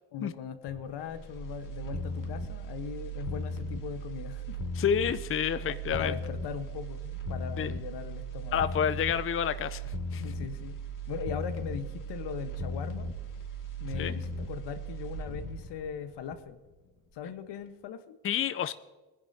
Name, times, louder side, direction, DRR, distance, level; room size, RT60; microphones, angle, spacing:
voice 1, 0.1-4.6 5.9-8.7 10.2-10.8 11.1-13.1 13.8-16.6 17.1-18.2, left 8 dB, 70° left, 9 dB, 1.3 m, -39 dB
sound 1, 0.7-16.7 17.1-17.2, right 1 dB, 50° left, 2.3 m, -37 dB
voice 2, 4.8-6.1 7.6-7.7 8.5-10.2 14.0-14.2 18.2-18.7, left 8 dB, 30° left, 12 dB, 0.6 m, -29 dB
21.0 x 10.5 x 2.8 m, 1.2 s
supercardioid pair, 55°, 42 cm